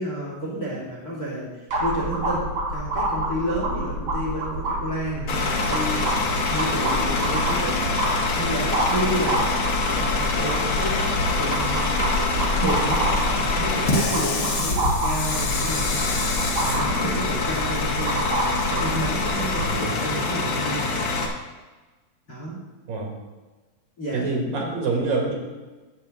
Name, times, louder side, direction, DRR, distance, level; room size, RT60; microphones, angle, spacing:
voice 1, 0.0-1.5 1.8-7.8 8.4-9.5 9.9-12.2 12.6-13.1 13.5-18.2 18.7-21.2 22.3-22.6 24.0-24.3, right 1 dB, 30° left, -4 dB, 2.4 m, -31 dB
sound 1, 1.7-19.7, right 1 dB, 35° right, 4.3 m, -28 dB
Bus / Idling, 5.3-21.3, left 3 dB, 65° left, 1.2 m, -25 dB
voice 2, 19.6-19.9 22.9-23.1 24.1-25.3, right 3 dB, 75° right, 0 dB, 3.5 m, -26 dB
12.0 x 8.1 x 3.8 m, 1.3 s
omnidirectional pair, 4.1 m